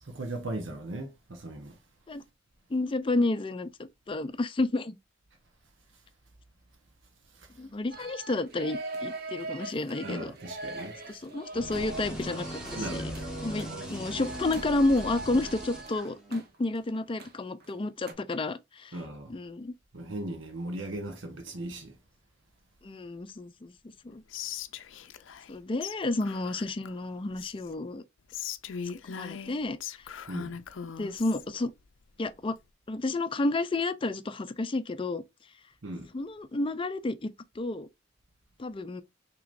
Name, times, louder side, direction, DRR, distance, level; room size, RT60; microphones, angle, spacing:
voice 1, 0.0-1.8 7.3-7.5 10.0-11.0 12.8-13.2 18.9-19.3 19.9-22.0 30.3-30.6 35.8-36.1, right 1 dB, 80° right, 1.0 m, -38 dB
voice 2, 2.7-3.7 4.1-5.0 7.6-10.3 11.1-13.1 13.4-19.0 19.3-19.7 22.8-23.7 24.0-24.2 25.5-28.0 29.1-30.0 31.0-31.7 32.2-32.6 32.9-35.2 36.1-37.3 37.6-37.9 38.6-39.0, left 2 dB, 30° left, 0.5 m, -31 dB
sound 1, 7.9-17.3 17.6-17.7 18.1-18.2, right 3 dB, 55° right, 1.1 m, -41 dB
sound 2, 11.5-16.4, equal, 5° right, 1.3 m, -40 dB
Whispering, 24.3-25.5 25.8-26.0 26.2-27.7 28.3-31.5, left 8 dB, 90° left, 0.5 m, -40 dB
6.0 x 3.0 x 2.5 m
head